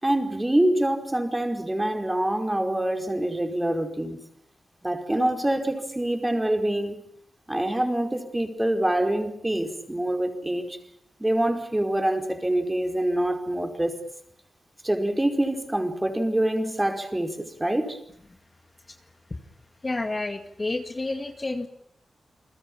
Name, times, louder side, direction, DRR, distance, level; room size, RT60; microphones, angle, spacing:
voice 1, 0.0-4.2 4.8-7.0 7.5-10.8 11.2-14.0 14.8-18.0, right 1 dB, 15° right, 6 dB, 4.9 m, -25 dB
voice 2, 19.8-21.7, left 2 dB, 30° left, 6 dB, 2.2 m, -30 dB
30.0 x 21.0 x 8.7 m, 0.71 s
wide cardioid pair, 95°, 0 cm